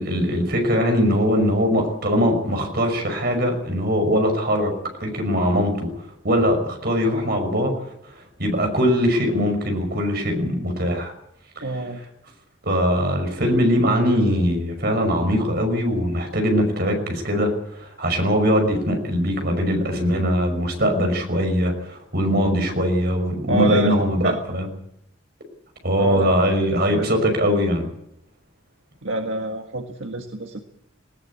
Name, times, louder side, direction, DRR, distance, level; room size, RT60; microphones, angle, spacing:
voice 1, 0.0-4.7 5.0-5.9 6.2-7.7 8.4-11.1 12.7-17.5 17.8-24.7 25.8-27.9, equal, 50° right, 5 dB, 5.7 m, -21 dB
voice 2, 11.6-12.0 23.5-23.9 24.2-24.4 26.0-26.3 27.0-27.1 29.0-30.6, right 2 dB, 70° right, 4 dB, 1.7 m, -27 dB
20.0 x 18.5 x 8.5 m, 0.77 s
head